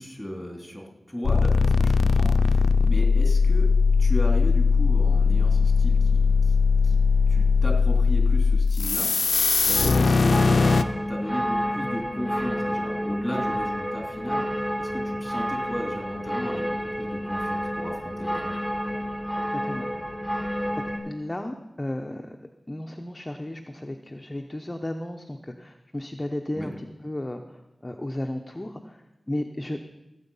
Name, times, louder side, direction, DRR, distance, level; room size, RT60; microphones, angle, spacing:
voice 1, 0.0-3.7 4.0-6.5 6.8-7.0 7.3-10.8 11.1-14.4 14.8-18.5 26.5-26.7, equal, 5° left, 1 dB, 3.1 m, -35 dB
sound 1, 1.2-10.8, left 4 dB, 75° left, 0.5 m, -20 dB
sound 2, 9.7-21.0, equal, 20° right, 3.9 m, -29 dB
voice 2, 19.5-19.9 21.0-22.4 22.7-29.8, left 1 dB, 20° left, 4 dB, 0.8 m, -34 dB
16.0 x 8.2 x 5.5 m, 0.97 s
wide cardioid pair, 70°, 0 cm